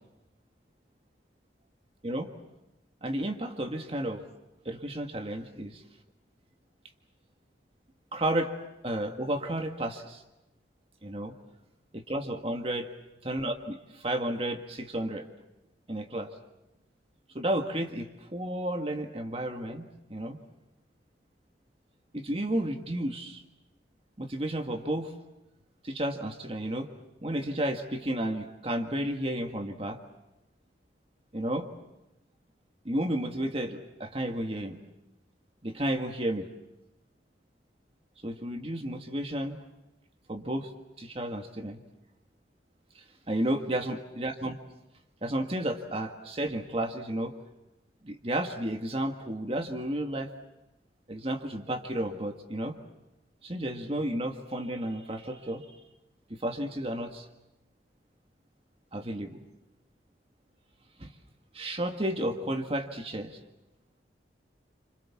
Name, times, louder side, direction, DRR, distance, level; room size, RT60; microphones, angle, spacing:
voice 1, 3.0-4.2 4.6-5.8 8.1-8.5 8.8-10.2 11.0-11.3 11.9-12.8 13.2-14.6 14.9-15.3 15.9-16.3 17.3-20.4 22.1-23.4 24.2-25.1 25.8-26.9 27.2-30.0 31.3-31.7 32.8-34.8 35.6-36.5 38.2-39.6 40.3-40.7 41.0-41.8 42.9-44.5 45.2-47.3 48.0-50.3 51.1-52.8 53.4-55.6 56.3-57.3 58.9-59.4 61.0-61.1 61.5-63.4, right 1 dB, 30° right, 5 dB, 1.7 m, -32 dB
29.5 x 26.5 x 7.3 m, 0.93 s
head